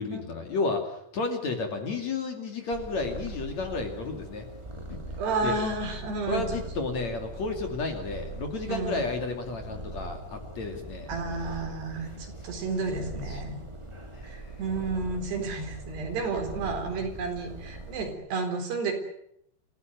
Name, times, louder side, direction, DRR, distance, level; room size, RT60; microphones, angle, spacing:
voice 1, 0.0-4.5 4.9-5.0 5.4-5.5 6.3-11.1 13.3-13.4 14.1-14.5 16.6-16.8, left 3 dB, 45° left, 4 dB, 3.5 m, -32 dB
Purr, 2.7-18.1, right 1 dB, 10° right, 1.8 m, -41 dB
voice 2, 5.2-6.4 8.7-9.0 11.1-13.6 14.2-18.9, right 4 dB, 85° right, 5 dB, 6.1 m, -31 dB
27.5 x 16.0 x 9.3 m, 0.74 s
omnidirectional pair, 4.6 m